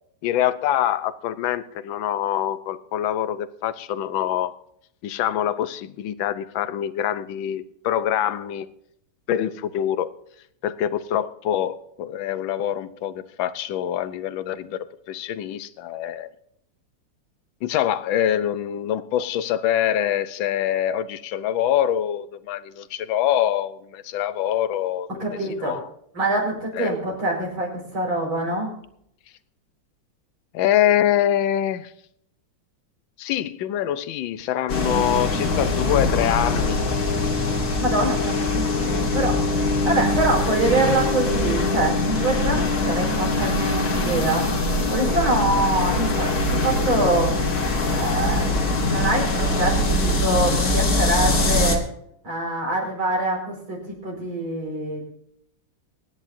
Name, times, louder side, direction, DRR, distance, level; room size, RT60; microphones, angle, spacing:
voice 1, 0.2-4.5 5.0-8.7 9.3-10.1 10.6-16.3 17.6-25.2 25.6-25.9 26.8-26.9 30.5-31.9 33.2-36.8 38.9-39.1 40.4-40.6, left 11 dB, 70° left, 1.4 m, -25 dB
voice 2, 25.2-25.8 26.1-28.7 37.8-39.4 39.8-44.5 44.9-47.3 47.9-51.8 52.2-55.0, right 2 dB, 65° right, 5.9 m, -25 dB
sound 1, 34.7-51.8, left 2 dB, 45° left, 2.1 m, -22 dB
24.0 x 10.5 x 2.7 m
omnidirectional pair, 2.4 m